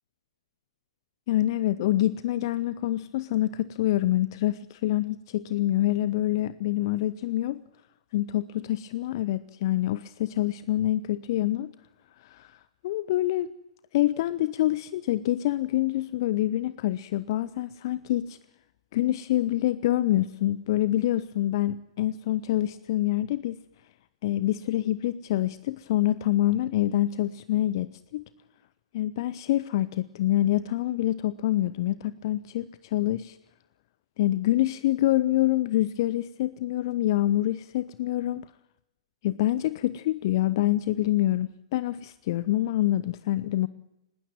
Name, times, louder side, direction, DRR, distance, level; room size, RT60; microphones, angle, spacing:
voice 1, 1.3-7.6 8.1-11.7 12.2-12.6 12.8-13.5 13.9-18.4 18.9-23.6 24.2-28.2 28.9-33.4 34.2-38.5 39.2-43.7, left 14 dB, 45° left, 0.7 m, -26 dB
20.5 x 18.5 x 7.6 m
figure-of-eight pair, 115°, 3 cm